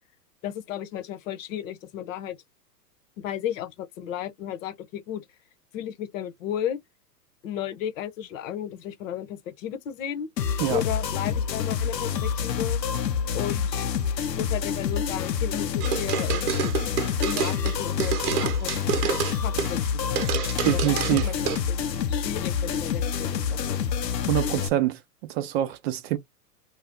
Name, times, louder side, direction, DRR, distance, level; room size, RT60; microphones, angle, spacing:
voice 1, 0.4-2.4 3.2-5.2 5.7-6.8 7.4-10.3 10.7-12.8 13.3-13.9 14.3-20.1 20.7-23.8, left 10 dB, 50° left, 0.9 m, -34 dB
sound 1, 10.4-24.7, left 7 dB, 85° left, 0.7 m, -27 dB
sound 2, 15.8-19.9 20.2-21.6, right 8 dB, 65° right, 1.0 m, -28 dB
voice 2, 20.6-21.3 24.3-25.0 25.3-26.2, right 14 dB, 40° right, 0.6 m, -25 dB
2.6 x 2.3 x 3.5 m
hypercardioid pair, 110°, 48 cm